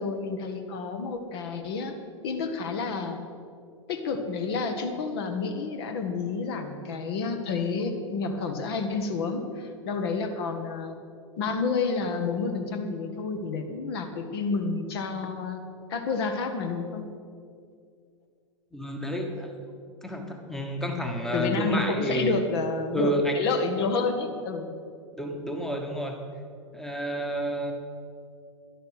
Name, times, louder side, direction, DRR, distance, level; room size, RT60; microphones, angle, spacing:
voice 1, 0.0-1.9 2.2-3.2 3.9-11.0 11.4-15.6 15.9-17.0 21.3-24.7, left 4 dB, 50° left, 6 dB, 1.4 m, -29 dB
voice 2, 18.7-19.5 20.0-22.4 22.9-23.4 25.2-26.2 26.7-27.7, right 1 dB, ahead, 3 dB, 1.2 m, -30 dB
11.5 x 11.0 x 6.6 m, 2.3 s
figure-of-eight pair, 95°, 16 cm